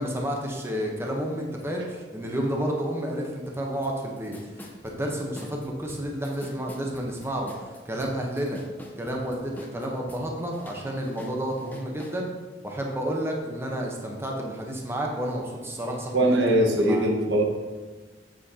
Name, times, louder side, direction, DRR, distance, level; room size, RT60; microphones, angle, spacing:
voice 1, 0.0-4.4 4.8-8.6 9.0-12.3 12.6-16.4 16.8-17.1, equal, 15° right, 0 dB, 0.9 m, -30 dB
sound 1, 3.8-3.9 4.2-10.2 10.5-12.2, left 1 dB, 10° left, 0.8 m, -45 dB
voice 2, 16.1-17.4, right 1 dB, 90° right, 0 dB, 1.3 m, -21 dB
7.4 x 7.2 x 2.8 m, 1.3 s
head